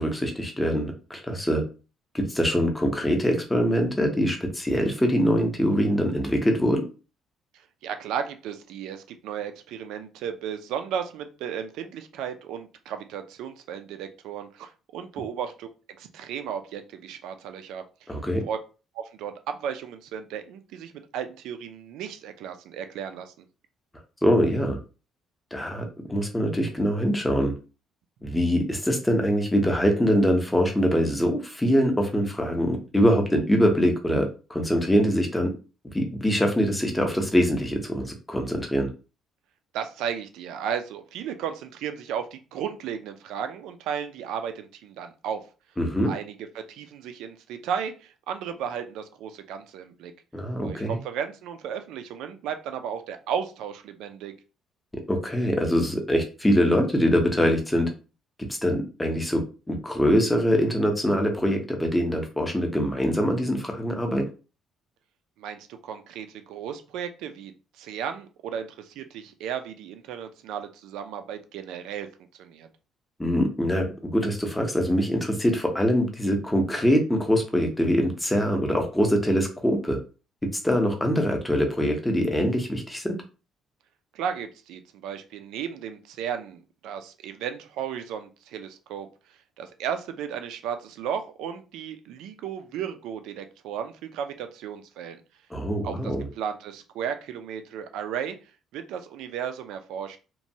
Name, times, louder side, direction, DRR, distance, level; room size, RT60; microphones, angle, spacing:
voice 1, 0.0-1.6 2.1-6.8 18.1-18.4 24.2-24.8 25.5-27.5 28.2-35.5 35.9-38.9 45.8-46.1 50.3-51.0 55.1-57.9 58.5-64.2 73.2-80.0 80.4-83.2 95.5-96.3, equal, 5° left, 3 dB, 0.5 m, -23 dB
voice 2, 7.5-15.7 16.0-17.8 18.4-18.6 18.9-23.5 39.7-45.4 46.1-50.1 50.6-54.3 65.4-72.1 72.4-72.7 84.1-95.2 95.8-98.4 98.7-100.2, right 8 dB, 85° right, 8 dB, 0.4 m, -34 dB
3.0 x 2.2 x 2.7 m, 0.33 s
cardioid pair, 165°, 0 cm